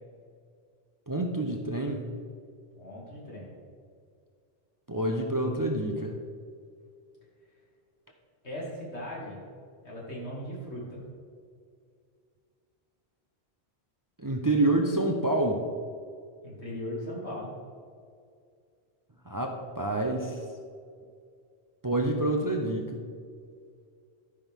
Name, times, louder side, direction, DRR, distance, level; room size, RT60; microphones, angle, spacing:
voice 1, 1.1-2.1 4.9-6.1 14.2-15.6 19.3-20.4 21.8-23.0, right 2 dB, 25° right, 3 dB, 0.6 m, -27 dB
voice 2, 2.7-3.6 8.4-9.5 9.8-11.0 16.4-17.5, equal, 85° left, -6 dB, 2.8 m, -38 dB
13.0 x 6.1 x 3.6 m, 2.2 s
omnidirectional pair, 1.1 m